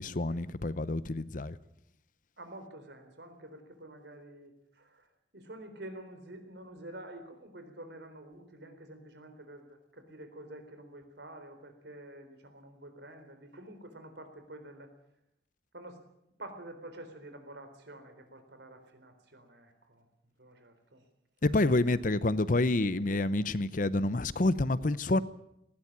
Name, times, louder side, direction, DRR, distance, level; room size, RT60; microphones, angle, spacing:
voice 1, 0.0-1.6 21.4-25.2, left 2 dB, 50° left, 16 dB, 0.8 m, -28 dB
voice 2, 2.4-5.1 5.3-14.9 15.7-16.0 16.4-20.1 20.4-21.0 21.8-22.0, right 1 dB, 75° right, 8 dB, 3.9 m, -48 dB
19.5 x 16.5 x 8.8 m, 0.78 s
head